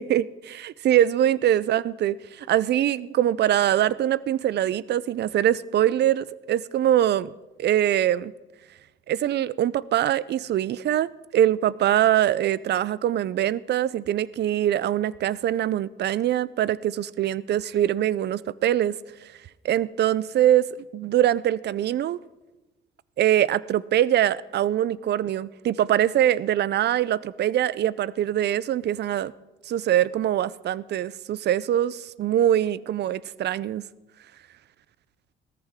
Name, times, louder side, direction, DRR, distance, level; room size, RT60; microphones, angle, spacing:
voice 1, 0.0-7.3 7.6-8.3 9.1-19.0 19.6-22.2 23.2-29.3 29.7-33.8, right 11 dB, 60° right, 0.5 m, -23 dB
17.0 x 14.0 x 3.6 m
cardioid pair, 90°, 20 cm